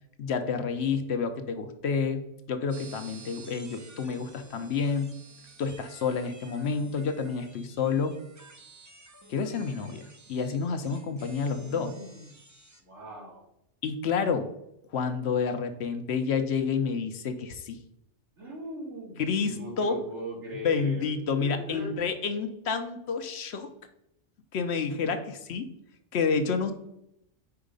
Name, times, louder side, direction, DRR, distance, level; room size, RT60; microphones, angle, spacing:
voice 1, 0.2-2.2 2.5-5.1 5.6-8.2 9.3-11.9 13.8-14.5 14.9-17.8 19.2-20.0 20.6-23.7 24.5-25.7 26.1-26.7, left 5 dB, 65° left, 8 dB, 0.9 m, -29 dB
sound 1, 2.7-12.8, right 3 dB, 25° right, 0.4 m, -52 dB
voice 2, 11.5-12.3 12.8-13.5 18.4-21.9, equal, 75° right, -2 dB, 2.1 m, -40 dB
4.8 x 4.5 x 5.1 m, 0.79 s
omnidirectional pair, 1.2 m